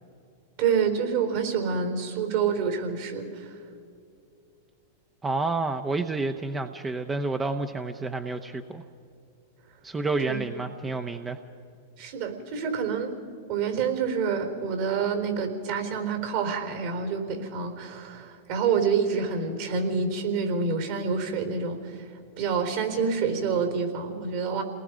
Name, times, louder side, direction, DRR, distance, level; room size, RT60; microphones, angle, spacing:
voice 1, 0.6-3.5 10.2-10.4 12.0-13.1 13.5-21.9 22.4-24.6, right 6 dB, 55° right, 5 dB, 4.1 m, -27 dB
voice 2, 5.2-8.8 9.8-11.4, right 3 dB, 15° right, 7 dB, 0.9 m, -29 dB
28.5 x 19.5 x 5.1 m, 2.5 s
hypercardioid pair, 115°, 0 cm